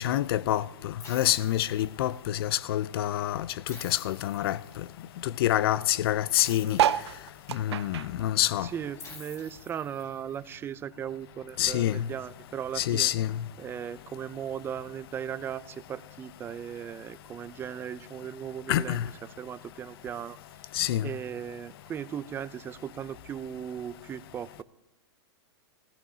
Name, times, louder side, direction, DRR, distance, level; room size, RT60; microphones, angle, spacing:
voice 1, 0.0-4.6 5.2-6.8 7.5-8.7 11.6-12.1 12.8-13.4 18.7-19.1 20.7-21.1, left 12 dB, 60° left, 0.5 m, -27 dB
sound 1, 1.0-2.3 3.7-5.0 6.3-7.7 9.0-10.3, left 4 dB, 25° left, 3.2 m, -48 dB
sound 2, 6.7-9.5 9.8-11.3 11.8-11.9 12.1-12.2 12.4-12.8 13.6-13.7, right 10 dB, 80° right, 0.5 m, -30 dB
voice 2, 8.6-13.1 13.6-19.0 19.4-20.4 21.0-24.6, right 9 dB, 15° right, 0.4 m, -37 dB
16.0 x 14.0 x 2.8 m
hypercardioid pair, 135°, 14 cm